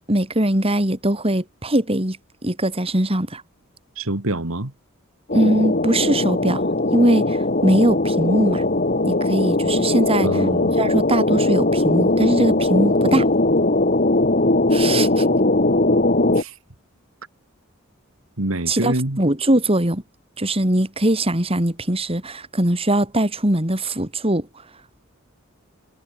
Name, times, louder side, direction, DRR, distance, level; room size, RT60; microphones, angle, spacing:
voice 1, 0.1-2.2 2.4-3.4 5.3-6.6 6.9-8.6 9.0-10.3 10.8-13.3 14.7-15.3 18.7-20.0 20.4-24.5, right 1 dB, 30° right, 3.7 m, -21 dB
voice 2, 4.0-4.7 10.2-10.8 16.4-16.5 18.4-19.2, right 1 dB, 80° right, 2.5 m, -25 dB
sound 1, 5.3-16.4, left 2 dB, 40° left, 2.1 m, -19 dB
head